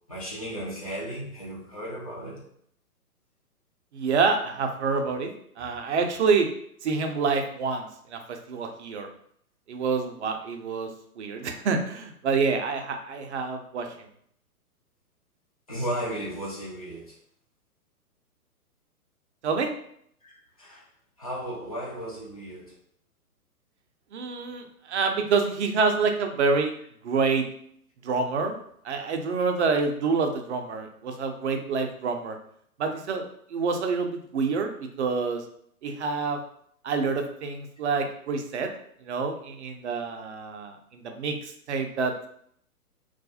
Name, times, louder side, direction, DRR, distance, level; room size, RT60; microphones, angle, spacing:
voice 1, 0.1-2.4 15.7-17.2 20.2-20.3 20.6-20.9 21.2-22.7, equal, 30° left, -6 dB, 0.3 m, -35 dB
voice 2, 3.9-5.3 5.6-6.5 6.8-9.1 9.7-10.9 11.2-13.9 19.4-19.7 24.1-26.7 27.0-27.4 28.0-28.6 28.8-32.4 32.8-33.3 33.5-35.4 35.8-36.4 36.8-38.7 39.0-41.3 41.7-42.3, right 4 dB, 50° right, 5 dB, 0.4 m, -27 dB
2.3 x 2.0 x 2.7 m, 0.67 s
figure-of-eight pair, 120°, 45 cm